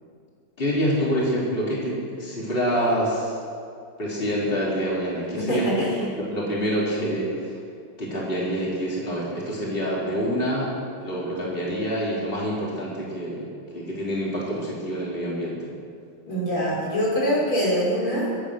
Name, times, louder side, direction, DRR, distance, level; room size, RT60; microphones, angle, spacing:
voice 1, 0.6-3.4 4.0-5.7 6.2-7.6 8.0-10.7 11.0-13.4 13.7-15.6, equal, 25° left, -6 dB, 3.8 m, -26 dB
voice 2, 5.4-6.0 16.2-18.3, equal, 80° left, -5 dB, 5.7 m, -24 dB
24.5 x 9.1 x 6.4 m, 2.3 s
omnidirectional pair, 2.2 m